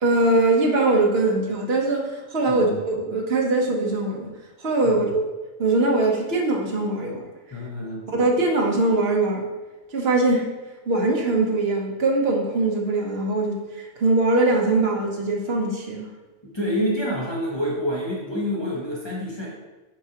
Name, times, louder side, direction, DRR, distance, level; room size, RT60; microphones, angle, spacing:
voice 1, 0.0-4.3 4.6-5.2 5.6-7.2 8.1-9.4 9.9-10.5 10.9-16.1, right 2 dB, 55° right, 0 dB, 1.2 m, -22 dB
voice 2, 7.5-8.1 16.4-19.5, equal, 20° left, -6 dB, 1.2 m, -27 dB
7.2 x 4.6 x 2.9 m, 1.2 s
omnidirectional pair, 1.3 m